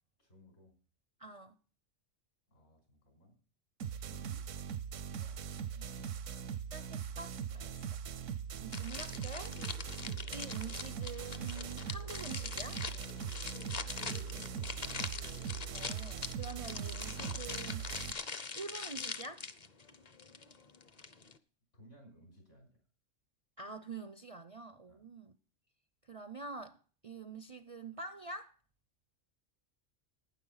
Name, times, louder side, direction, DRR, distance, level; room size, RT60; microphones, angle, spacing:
voice 1, 0.2-0.7 2.5-3.4 5.2-5.4 5.7-6.2 14.0-15.1 21.7-22.8 24.8-25.1, equal, 75° left, 5.6 m, -60 dB
voice 2, 1.2-1.5 4.1-4.4 6.7-7.7 8.6-9.6 10.3-12.8 15.7-17.9 18.5-19.4 23.6-25.3 26.0-26.8 27.0-28.5, right 4 dB, 40° right, 0.5 m, -46 dB
sound 1, 3.8-18.1, right 8 dB, 80° right, 1.1 m, -41 dB
sound 2, 8.7-21.4, left 4 dB, 35° left, 0.8 m, -43 dB
12.0 x 9.6 x 5.6 m
omnidirectional pair, 1.3 m